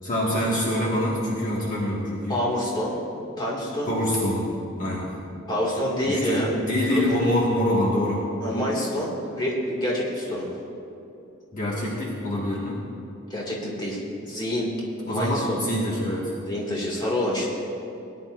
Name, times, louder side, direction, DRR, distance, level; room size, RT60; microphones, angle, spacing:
voice 1, 0.0-2.4 3.9-5.1 6.0-8.2 11.5-12.8 15.0-16.3, left 1 dB, 40° left, -6 dB, 1.7 m, -25 dB
voice 2, 2.3-3.0 3.4-3.9 5.5-7.1 8.4-10.5 13.3-14.7 15.0-15.6 16.4-17.5, left 1 dB, 20° left, -5 dB, 2.1 m, -27 dB
19.5 x 10.5 x 2.5 m, 2.7 s
head